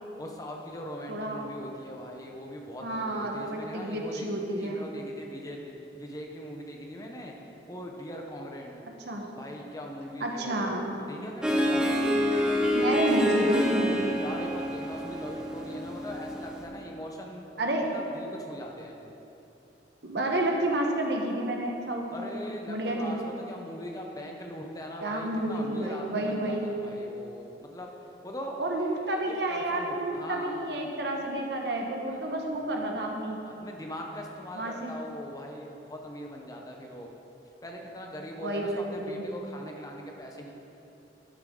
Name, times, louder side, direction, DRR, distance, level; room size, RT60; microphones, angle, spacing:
voice 1, 0.2-4.3 4.6-7.3 7.7-8.8 9.4-12.1 14.1-17.5 17.8-19.0 22.1-23.2 23.5-27.9 28.2-30.9 32.1-32.9 33.4-37.1 37.6-40.5, equal, 20° left, 1 dB, 1.1 m, -41 dB
voice 2, 1.1-1.4 2.8-4.8 9.1-9.3 10.2-11.0 12.7-14.1 17.6-17.9 20.0-22.3 22.7-23.2 25.0-26.7 28.6-33.4 34.5-34.9 38.4-39.2, right 1 dB, 65° right, 1 dB, 1.4 m, -30 dB
Harp, 11.4-16.6, equal, 5° right, 1.1 m, -27 dB
12.5 x 9.7 x 4.0 m, 2.9 s
head